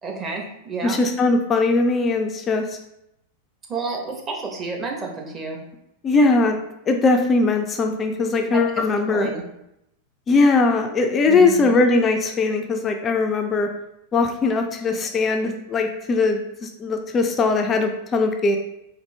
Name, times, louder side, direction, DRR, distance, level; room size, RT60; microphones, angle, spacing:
voice 1, 0.0-1.0 3.7-5.6 8.4-8.6 9.1-9.4 11.3-11.8, right 3 dB, 25° right, 0 dB, 0.9 m, -30 dB
voice 2, 0.8-2.8 6.0-6.6 6.9-9.3 10.3-13.7 14.1-18.6, left 3 dB, 25° left, 5 dB, 0.3 m, -20 dB
4.2 x 2.5 x 3.2 m, 0.83 s
figure-of-eight pair, 90°, 0 cm